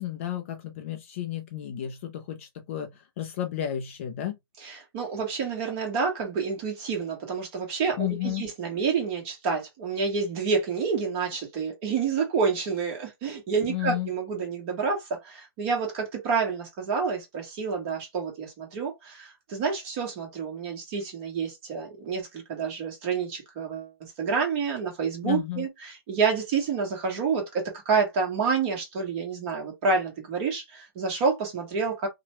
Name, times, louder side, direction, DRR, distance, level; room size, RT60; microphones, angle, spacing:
voice 1, 0.0-4.4 8.0-8.5 13.7-14.1 25.2-25.7, left 12 dB, 30° left, 0.4 m, -32 dB
voice 2, 4.6-32.1, right 5 dB, 30° right, 1.2 m, -28 dB
2.8 x 2.2 x 2.9 m
hypercardioid pair, 165°, 13 cm